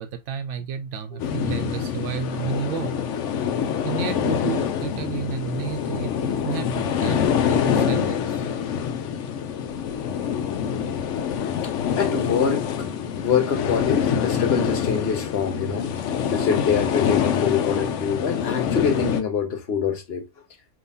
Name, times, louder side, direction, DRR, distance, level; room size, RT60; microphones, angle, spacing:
voice 1, 0.0-3.0 3.8-7.2 7.5-8.5, right 8 dB, 80° right, 0.9 m, -31 dB
sound 1, 1.2-19.2, left 8 dB, 85° left, 0.9 m, -25 dB
voice 2, 11.6-15.9 16.3-20.3, left 6 dB, 60° left, 1.2 m, -25 dB
5.3 x 2.9 x 2.7 m
omnidirectional pair, 1.2 m